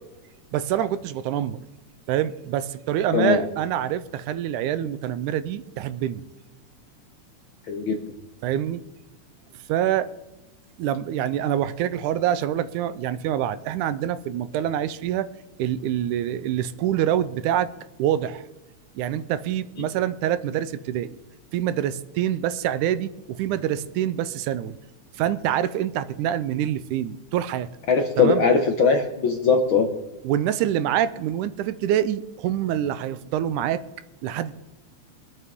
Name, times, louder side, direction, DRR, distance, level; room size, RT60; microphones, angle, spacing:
voice 1, 0.5-1.6 2.1-6.2 8.4-8.8 9.7-10.1 10.8-15.3 15.6-17.7 18.0-18.4 19.0-21.2 21.5-24.8 25.2-27.7 28.2-28.4 30.2-33.8 34.2-34.5, right 11 dB, 85° right, 14 dB, 2.1 m, -26 dB
voice 2, 7.7-8.0 27.9-29.9, left 5 dB, 60° left, 4 dB, 1.4 m, -20 dB
23.5 x 8.3 x 3.6 m, 1.1 s
omnidirectional pair, 3.5 m